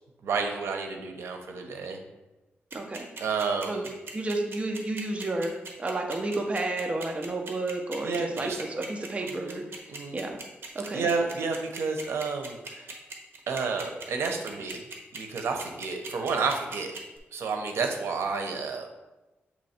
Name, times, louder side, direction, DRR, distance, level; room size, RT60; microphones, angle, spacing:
voice 1, 0.2-2.0 3.2-3.9 8.0-8.6 9.2-9.6 9.9-10.2 10.9-13.0 13.5-14.8 15.1-16.9 17.3-18.9, right 4 dB, 85° right, 4 dB, 0.8 m, -30 dB
voice 2, 2.7-3.1 3.7-3.8 4.1-9.6 10.1-10.4 10.7-11.1, right 2 dB, 30° right, 2 dB, 0.7 m, -31 dB
sound 1, 2.7-17.2, right 3 dB, 65° right, 1.1 m, -40 dB
7.7 x 3.1 x 4.3 m, 1.1 s
wide cardioid pair, 130°, 4 cm